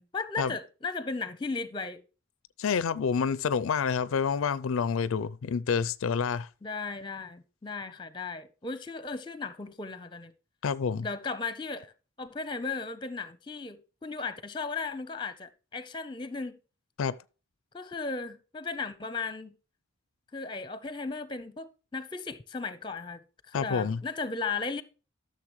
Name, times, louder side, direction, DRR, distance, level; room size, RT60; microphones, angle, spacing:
voice 1, 0.0-2.0 6.6-10.3 11.0-11.9 12.2-16.6 17.7-19.5 20.3-23.2 23.5-24.8, left 4 dB, 20° left, 0.7 m, -36 dB
voice 2, 2.6-6.5 10.6-11.1 17.0-17.2 23.5-24.0, left 6 dB, 70° left, 0.4 m, -28 dB
13.5 x 6.8 x 3.1 m
head